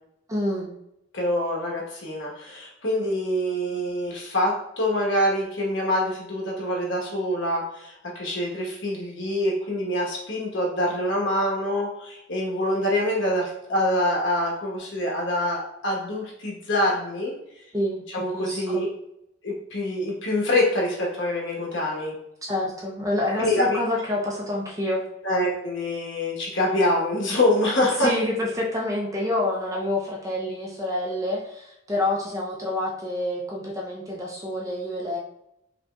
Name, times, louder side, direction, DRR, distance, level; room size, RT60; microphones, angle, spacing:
voice 1, 0.3-0.7 17.7-18.8 22.5-25.0 28.0-35.2, left 1 dB, 15° right, -2 dB, 0.6 m, -28 dB
voice 2, 1.1-17.3 18.1-18.9 19.4-22.1 23.4-23.8 25.2-28.1, left 1 dB, 60° left, -2 dB, 1.1 m, -25 dB
5.1 x 2.8 x 2.3 m, 0.80 s
head